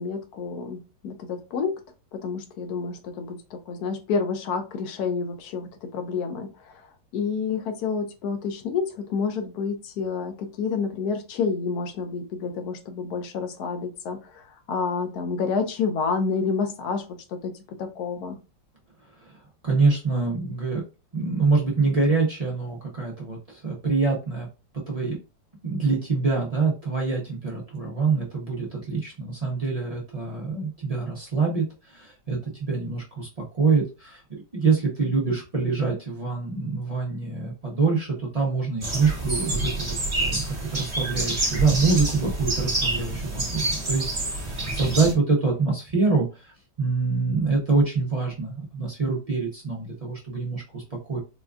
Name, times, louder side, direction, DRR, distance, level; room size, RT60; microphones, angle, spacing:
voice 1, 0.0-1.7 2.1-6.8 7.1-17.0 17.4-17.5 17.8-18.4, left 5 dB, 70° left, 6 dB, 1.1 m, -29 dB
voice 2, 19.6-20.8 21.1-24.5 24.9-25.2 25.6-51.2, right 4 dB, 65° right, -3 dB, 0.3 m, -25 dB
sound 1, 38.8-45.1, right 2 dB, 25° right, 0.8 m, -28 dB
4.2 x 2.3 x 2.3 m, 0.30 s
omnidirectional pair, 1.9 m